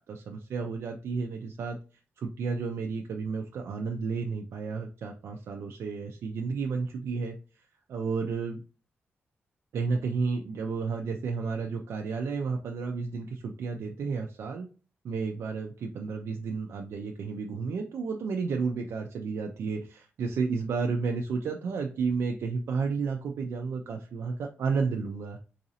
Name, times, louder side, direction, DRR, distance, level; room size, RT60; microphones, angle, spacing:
voice 1, 0.1-1.8 2.2-7.4 7.9-8.6 9.7-14.7 15.0-25.4, right 4 dB, 75° right, 2 dB, 0.4 m, -32 dB
3.9 x 2.6 x 2.7 m, 0.35 s
wide cardioid pair, 170°, 4 cm